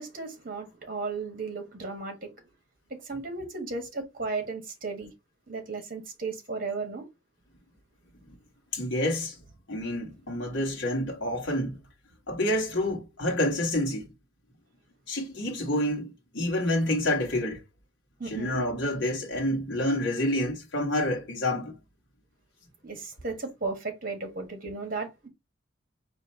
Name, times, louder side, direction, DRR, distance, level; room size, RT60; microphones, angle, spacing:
voice 1, 0.0-2.3 3.0-5.1 5.5-7.0 18.2-18.6 22.8-25.3, right 4 dB, 45° right, 1.5 m, -35 dB
voice 2, 8.7-9.4 9.7-11.8 12.3-14.1 15.1-17.6 18.3-21.7, left 1 dB, 65° left, 1.3 m, -28 dB
4.4 x 2.7 x 4.0 m
head